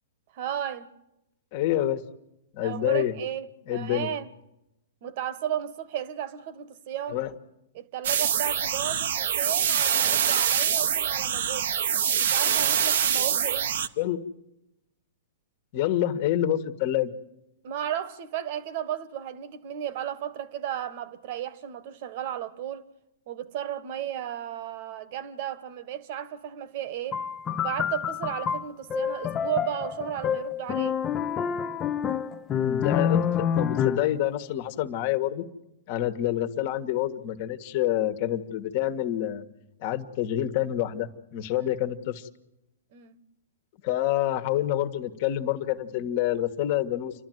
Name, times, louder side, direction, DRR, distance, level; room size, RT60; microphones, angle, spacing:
voice 1, 0.3-0.9 2.6-4.3 5.0-7.3 7.7-11.7 12.2-13.8 17.6-22.9 23.3-27.2 27.6-31.0 41.5-41.7 42.9-43.2, right 10 dB, 50° right, 1.5 m, -34 dB
voice 2, 1.5-2.0 2.5-3.1 3.7-4.1 7.1-7.3 14.0-14.2 15.7-17.1 32.6-35.5 35.9-39.4 39.8-42.3 43.8-47.1, left 12 dB, 50° left, 1.6 m, -27 dB
sound 1, 8.0-13.9, right 8 dB, 70° right, 1.1 m, -25 dB
sound 2, 27.1-34.2, left 8 dB, 25° left, 0.7 m, -28 dB
28.5 x 12.0 x 9.3 m
hypercardioid pair, 130°, 0 cm